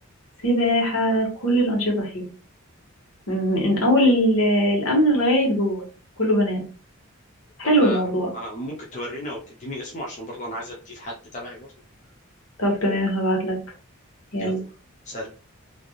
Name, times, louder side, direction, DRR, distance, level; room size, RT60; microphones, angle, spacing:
voice 1, 0.4-2.3 3.3-5.8 6.2-6.6 7.6-8.3 12.6-13.6 14.3-14.6, equal, 75° left, -1 dB, 1.3 m, -21 dB
voice 2, 7.6-8.0 8.3-11.7 14.4-14.6 15.1-15.3, equal, 35° left, -2 dB, 0.6 m, -34 dB
3.3 x 2.6 x 2.3 m, 0.36 s
head